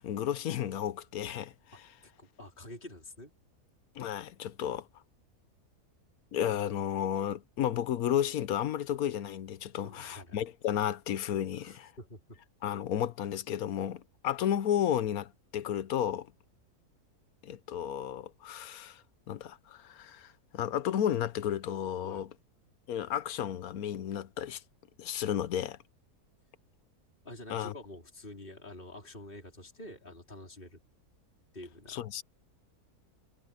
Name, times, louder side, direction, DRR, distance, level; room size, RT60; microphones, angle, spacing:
voice 1, 0.0-1.5 4.0-4.9 6.3-11.9 12.6-16.3 17.4-19.0 19.3-22.3 22.9-24.6 25.0-25.8 27.5-27.7 31.9-32.2, left 10 dB, 70° left, 1.2 m, -33 dB
voice 2, 1.7-3.3 9.8-10.4 11.6-12.4 22.0-22.2 27.2-30.8 31.5-32.0, left 1 dB, 30° left, 4.6 m, -48 dB
omnidirectional pair, 1.7 m